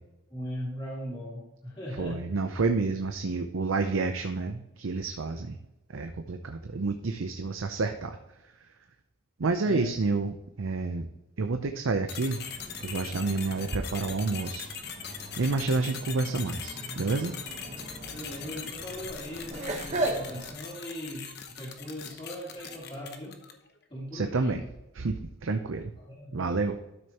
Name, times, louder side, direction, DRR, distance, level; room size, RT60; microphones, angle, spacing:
voice 1, 0.3-2.2 9.6-9.9 18.1-21.3 21.6-23.4 23.9-24.6 26.0-26.5, equal, 25° left, -7 dB, 2.8 m, -39 dB
voice 2, 1.9-5.6 5.9-8.2 9.4-11.1 11.4-12.4 12.8-14.7 15.4-17.3 24.1-24.6 24.9-25.9 26.3-26.7, right 3 dB, 80° right, 6 dB, 0.6 m, -29 dB
sound 1, 12.1-23.7, left 7 dB, 50° left, 0.9 m, -41 dB
sound 2, 12.2-20.6, right 2 dB, 35° right, 1.1 m, -38 dB
12.0 x 6.4 x 3.0 m, 0.92 s
head